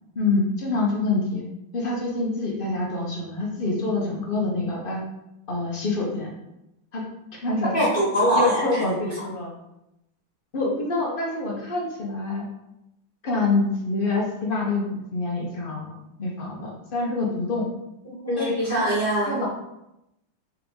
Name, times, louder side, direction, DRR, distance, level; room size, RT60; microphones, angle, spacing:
voice 1, 0.1-1.4 1.7-5.0 5.5-6.3 6.9-7.0 7.4-7.7 8.3-9.5 10.5-12.4 13.2-15.9 16.2-17.7 18.4-19.0 19.3-19.5, left 3 dB, 70° left, -3 dB, 0.5 m, -26 dB
voice 2, 7.7-9.0 18.0-19.4, equal, 35° left, -7 dB, 1.0 m, -23 dB
4.8 x 3.0 x 3.6 m, 0.87 s
omnidirectional pair, 2.2 m